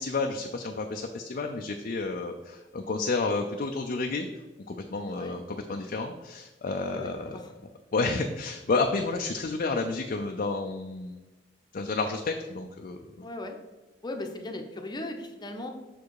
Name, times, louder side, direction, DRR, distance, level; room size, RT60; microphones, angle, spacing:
voice 1, 0.0-4.3 4.7-7.4 7.9-11.2 11.7-13.2, left 3 dB, 50° left, 3 dB, 0.5 m, -30 dB
voice 2, 5.1-5.4 6.8-7.5 13.2-13.6 14.0-15.7, left 1 dB, 25° left, 4 dB, 0.8 m, -38 dB
6.1 x 4.7 x 4.7 m, 1.1 s
head